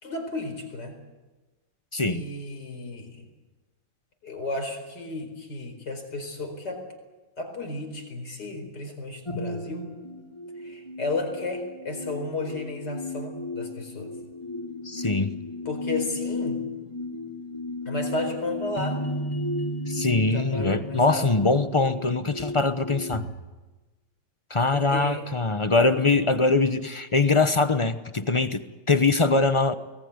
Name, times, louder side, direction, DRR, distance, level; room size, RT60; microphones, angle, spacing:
voice 1, 0.0-0.9 2.0-3.2 4.2-6.8 7.4-9.9 10.6-14.1 15.0-15.1 15.6-16.6 17.8-19.0 20.3-21.3 24.7-25.3 25.9-26.0, left 2 dB, 65° left, 5 dB, 5.1 m, -33 dB
voice 2, 1.9-2.2 14.8-15.3 19.9-23.3 24.5-28.6 28.9-29.7, left 3 dB, 35° left, 10 dB, 0.5 m, -22 dB
sound 1, 9.3-23.2, left 1 dB, 15° left, 2.9 m, -34 dB
24.0 x 19.0 x 9.6 m, 1.2 s
omnidirectional pair, 2.0 m